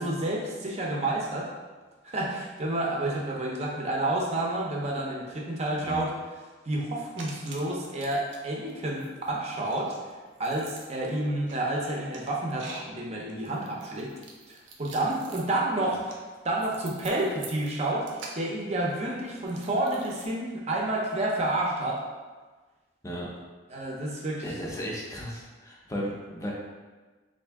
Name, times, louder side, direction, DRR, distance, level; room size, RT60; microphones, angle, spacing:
voice 1, 0.0-1.5 2.0-6.1 6.7-10.0 10.4-14.1 14.5-22.0 23.7-24.5, right 1 dB, 35° right, -2 dB, 0.6 m, -30 dB
sound 1, 7.2-8.4 8.7-20.3, right 4 dB, 85° right, 0.6 m, -46 dB
voice 2, 24.4-26.5, equal, 15° left, -3 dB, 0.6 m, -35 dB
3.5 x 2.6 x 3.4 m, 1.3 s
head